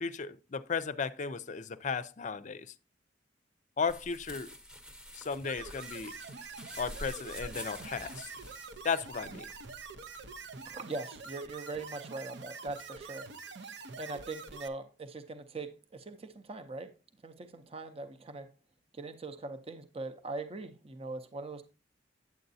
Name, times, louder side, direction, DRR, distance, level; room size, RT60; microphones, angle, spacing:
voice 1, 0.0-2.7 3.8-4.5 5.1-6.2 6.8-8.3 8.8-9.5, left 5 dB, 45° left, 0.5 m, -35 dB
sound 1, 3.9-10.8, equal, 5° right, 0.9 m, -48 dB
sound 2, 5.4-14.7, right 5 dB, 75° right, 0.8 m, -46 dB
voice 2, 10.7-13.3 13.6-16.9 17.2-18.5 18.9-21.6, right 3 dB, 35° right, 0.7 m, -41 dB
9.4 x 7.8 x 2.7 m
head